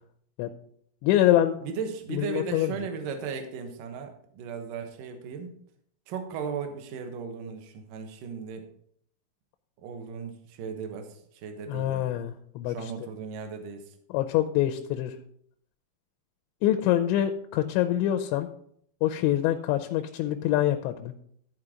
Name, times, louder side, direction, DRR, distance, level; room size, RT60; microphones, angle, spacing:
voice 1, 1.0-1.6 2.1-2.7 11.7-12.8 14.1-15.2 16.6-18.5 19.0-21.1, left 12 dB, 85° left, 6 dB, 2.9 m, -25 dB
voice 2, 1.6-5.6 6.1-8.7 9.8-12.1 12.7-13.9, right 6 dB, 65° right, 5 dB, 2.2 m, -36 dB
13.5 x 4.6 x 5.0 m, 0.66 s
omnidirectional pair, 5.1 m